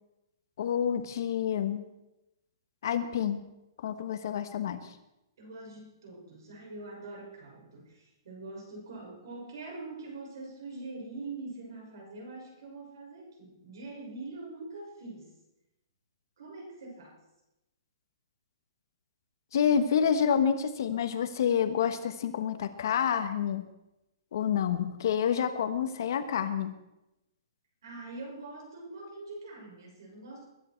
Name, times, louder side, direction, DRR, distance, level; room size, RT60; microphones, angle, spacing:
voice 1, 0.6-1.9 2.8-3.4 3.8-4.8 19.5-23.7 24.3-26.7, left 8 dB, 50° left, 10 dB, 1.3 m, -28 dB
voice 2, 5.4-15.3 16.4-17.2 27.8-30.5, right 3 dB, 60° right, 0 dB, 6.4 m, -44 dB
21.5 x 10.5 x 4.6 m, 0.92 s
hypercardioid pair, 170°, 2 cm